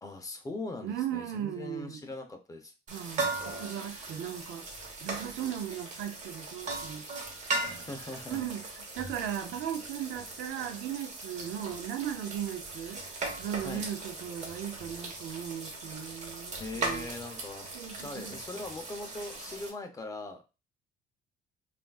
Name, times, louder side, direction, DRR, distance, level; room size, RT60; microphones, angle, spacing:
voice 1, 0.0-2.7 7.7-8.5 13.6-13.9 16.6-20.4, left 2 dB, 20° left, 0.7 m, -41 dB
voice 2, 0.8-2.0 2.9-4.7 5.0-7.1 8.3-8.7 8.9-13.0 13.4-17.1 17.7-18.4, right 10 dB, 80° right, 0.5 m, -37 dB
sound 1, 2.9-19.7, right 3 dB, 45° right, 1.0 m, -39 dB
3.5 x 2.5 x 2.3 m
cardioid pair, 110°, 17 cm